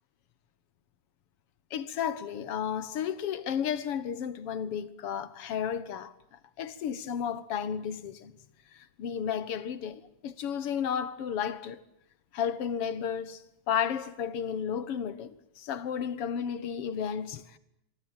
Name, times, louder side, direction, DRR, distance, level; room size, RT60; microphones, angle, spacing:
voice 1, 1.7-6.1 6.6-8.3 8.7-11.8 12.3-13.4 13.7-15.3 15.6-17.6, left 8 dB, 55° left, 2.0 m, -33 dB
27.0 x 23.5 x 9.0 m
omnidirectional pair, 3.6 m